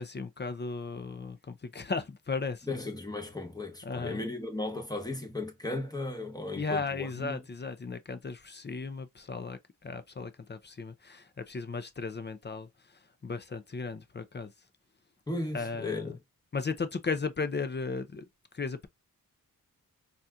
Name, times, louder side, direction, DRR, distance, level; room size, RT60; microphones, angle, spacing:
voice 1, 0.0-2.8 3.8-4.2 6.6-14.5 15.5-16.2 16.5-18.2 18.5-18.9, left 4 dB, 30° left, 0.5 m, -36 dB
voice 2, 2.7-7.4 15.3-16.2, left 2 dB, 10° left, 1.1 m, -36 dB
4.0 x 2.5 x 2.2 m
wide cardioid pair, 75°, 36 cm